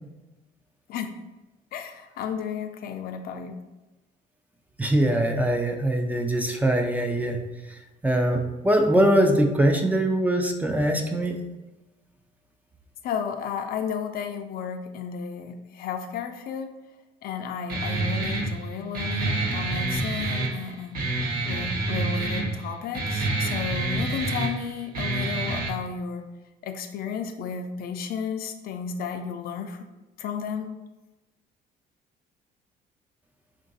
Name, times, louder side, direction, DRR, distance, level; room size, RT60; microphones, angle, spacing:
voice 1, 1.7-3.6 13.0-16.8 17.2-21.0 21.5-26.3 26.6-29.9 30.2-30.7, left 6 dB, 65° left, 7 dB, 0.4 m, -33 dB
voice 2, 4.8-7.4 8.0-11.3, right 1 dB, 10° right, 3 dB, 0.4 m, -22 dB
Guitar, 17.7-25.7, right 2 dB, 60° right, 0.9 m, -28 dB
3.7 x 2.5 x 3.8 m, 1.1 s
cardioid pair, 110°, 17 cm